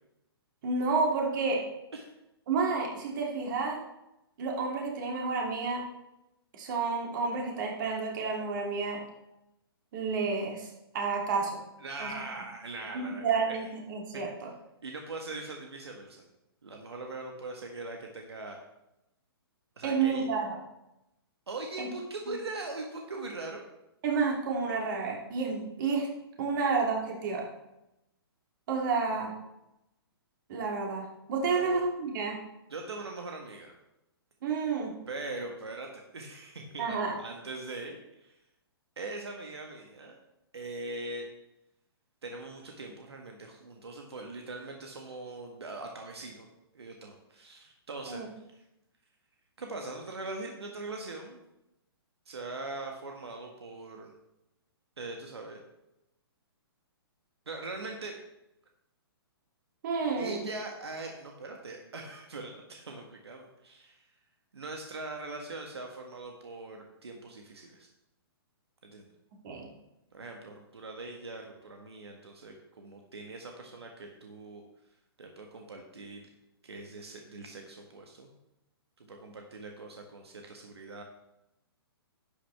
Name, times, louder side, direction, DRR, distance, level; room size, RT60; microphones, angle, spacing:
voice 1, 0.6-1.6 2.5-3.8 4.4-5.8 6.5-9.0 9.9-10.7 10.9-11.6 12.0-12.1 12.9-14.5 19.8-20.6 21.8-21.9 24.0-26.1 26.4-27.5 28.7-29.3 30.5-32.4 34.4-34.9 36.8-37.2 48.1-48.3 59.8-60.4 69.4-69.7, right 4 dB, 50° right, -1 dB, 3.0 m, -30 dB
voice 2, 11.8-13.6 14.1-14.2 14.8-16.2 16.6-18.6 19.8-20.3 21.5-23.6 31.5-31.8 32.7-33.7 35.1-38.3 39.0-40.2 40.5-41.3 42.2-46.5 46.7-48.2 49.6-51.4 52.3-54.1 55.0-55.6 57.5-58.2 60.2-64.1 64.5-67.9 68.8-69.1 70.1-74.6 75.2-76.3 76.6-78.3 79.0-81.0, right 2 dB, 90° right, 2 dB, 1.7 m, -41 dB
11.5 x 8.7 x 3.6 m, 0.89 s
hypercardioid pair, 140°, 13 cm